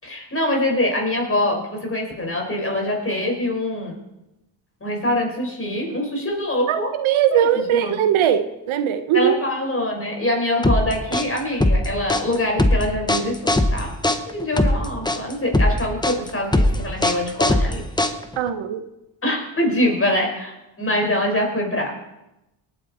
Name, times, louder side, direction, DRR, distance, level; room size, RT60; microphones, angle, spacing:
voice 1, 0.0-4.0 4.8-6.9 7.3-7.9 9.1-13.9 14.3-17.8 19.2-22.0, left 1 dB, 25° left, 1 dB, 5.0 m, -24 dB
voice 2, 6.7-9.4 18.4-18.8, right 9 dB, 75° right, 10 dB, 1.0 m, -20 dB
sound 1, 10.6-18.5, left 1 dB, 10° left, 1.0 m, -20 dB
18.5 x 9.2 x 4.3 m, 0.93 s
cardioid pair, 70°, 48 cm